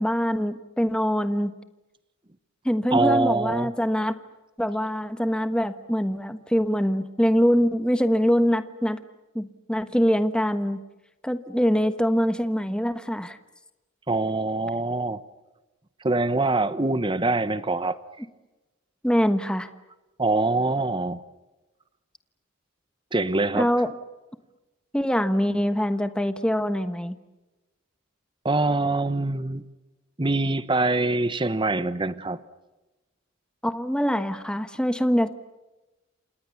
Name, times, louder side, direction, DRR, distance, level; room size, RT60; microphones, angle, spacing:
voice 1, 0.0-1.5 2.6-4.1 4.6-9.0 9.3-10.8 11.2-13.4 19.0-19.7 23.5-23.9 24.9-27.2 33.6-35.3, equal, 5° left, 10 dB, 1.2 m, -24 dB
voice 2, 2.9-3.7 14.1-15.2 16.0-18.0 20.2-21.2 23.1-23.7 28.4-29.6 30.2-32.4, right 2 dB, 25° right, 14 dB, 0.9 m, -24 dB
28.5 x 26.5 x 7.1 m, 1.1 s
head